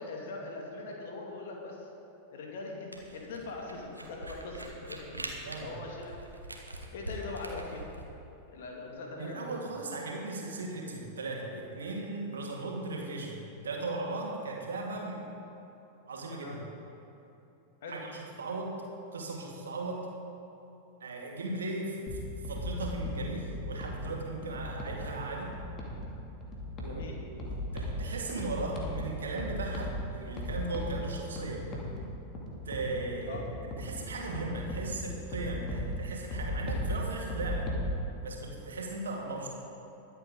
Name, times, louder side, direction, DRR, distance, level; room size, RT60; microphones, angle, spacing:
voice 1, 0.0-1.9 2.3-5.1 5.4-6.2 6.9-7.9 8.5-9.4 16.4-16.6 17.8-18.0 26.8-27.2 33.3-33.4, left 3 dB, 55° left, 0 dB, 2.3 m, -41 dB
Camera, 2.9-8.1, right 1 dB, 85° right, 1.3 m, -43 dB
voice 2, 5.1-5.8 9.2-15.3 16.1-16.6 17.9-18.8 19.1-20.1 21.0-25.6 26.8-31.7 32.6-33.4 33.8-37.7 38.2-39.5, right 2 dB, 70° right, -1 dB, 2.2 m, -37 dB
sound 1, 22.1-37.9, left 1 dB, 30° left, 2.4 m, -37 dB
22.0 x 8.2 x 3.8 m, 3.0 s
figure-of-eight pair, 90°, 0 cm